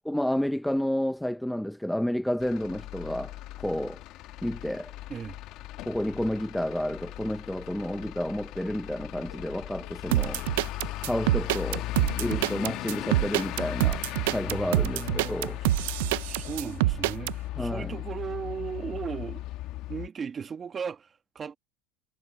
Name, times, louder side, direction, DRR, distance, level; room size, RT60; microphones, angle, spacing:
voice 1, 0.0-3.3 3.6-4.0 4.4-4.9 5.9-10.4 11.0-11.9 12.2-14.0 14.3-15.6 17.6-18.0, left 1 dB, ahead, 0.7 m, -30 dB
Truck / Idling, 2.4-20.1, left 15 dB, 55° left, 1.4 m, -38 dB
Crying sobbing / Breathing, 9.2-13.8 14.1-15.1 15.5-16.3, left 24 dB, 85° left, 6.8 m, -59 dB
sound 1, 10.1-17.3, right 18 dB, 85° right, 0.5 m, -26 dB
voice 2, 14.5-15.7 16.2-19.4 19.9-21.6, right 6 dB, 25° right, 1.5 m, -37 dB
supercardioid pair, 140°, 0 cm